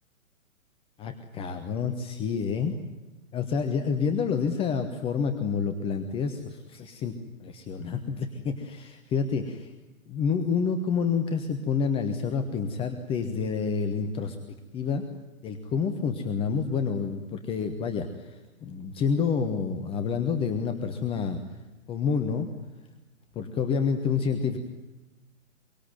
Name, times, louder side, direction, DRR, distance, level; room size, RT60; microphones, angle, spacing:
voice 1, 1.0-2.8 3.3-7.1 7.4-9.7 10.1-14.4 14.7-15.0 15.4-21.4 21.9-22.5 23.3-24.6, left 6 dB, 15° left, 7 dB, 1.3 m, -28 dB
24.0 x 23.5 x 9.3 m, 1.1 s
figure-of-eight pair, 120°, 40 cm